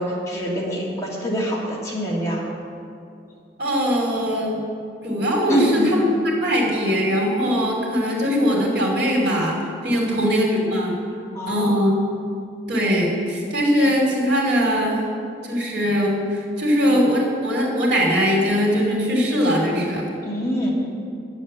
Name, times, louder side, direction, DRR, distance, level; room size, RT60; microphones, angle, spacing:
voice 1, 0.0-2.5 5.5-5.9 9.9-10.2 11.3-11.9 20.2-20.7, equal, 15° left, -5 dB, 2.0 m, -25 dB
voice 2, 3.6-4.6 5.0-11.0 11.5-11.9 12.7-15.0 15.4-20.0, equal, 60° right, -2 dB, 2.7 m, -21 dB
10.5 x 7.6 x 8.6 m, 2.5 s
head